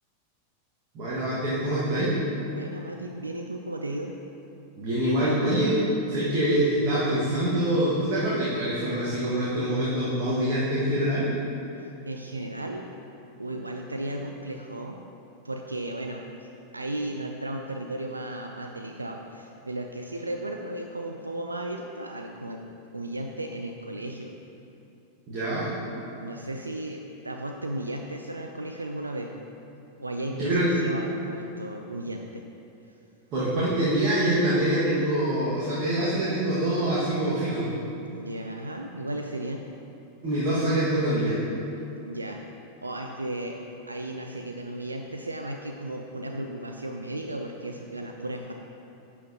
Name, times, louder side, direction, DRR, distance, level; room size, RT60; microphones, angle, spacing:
voice 1, 0.9-2.1 4.8-5.8 6.1-11.3 25.3-25.7 30.3-30.7 33.3-37.7 40.2-41.4, right 1 dB, 40° right, -9 dB, 1.7 m, -25 dB
voice 2, 2.5-4.2 11.8-12.9 13.4-15.0 15.4-22.6 22.9-24.3 26.2-29.3 30.0-32.4 38.1-39.6 42.0-42.4 42.8-43.6 43.9-48.5, right 1 dB, 80° right, 3 dB, 0.4 m, -35 dB
11.0 x 6.3 x 2.8 m, 2.8 s
figure-of-eight pair, 90°, 0 cm